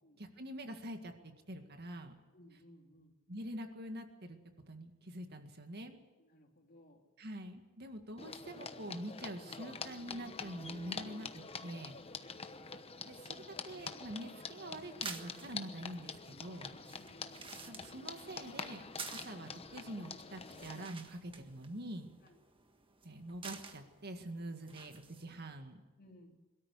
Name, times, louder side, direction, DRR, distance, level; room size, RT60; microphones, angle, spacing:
voice 1, 0.2-2.2 3.3-4.4 4.7-6.0 7.2-12.0 13.0-16.8 17.5-18.8 19.1-22.1 23.0-25.8, right 1 dB, 50° right, 6 dB, 2.0 m, -45 dB
voice 2, 2.3-3.2 6.2-7.0 12.1-12.4 16.9-17.3 19.1-19.3 22.2-22.4 26.0-26.4, left 1 dB, 45° left, 2 dB, 3.2 m, -61 dB
sound 1, 8.2-20.9, left 5 dB, 30° left, 1.0 m, -46 dB
sound 2, 14.8-25.6, right 5 dB, 25° right, 1.6 m, -52 dB
22.5 x 13.5 x 9.7 m, 1.2 s
head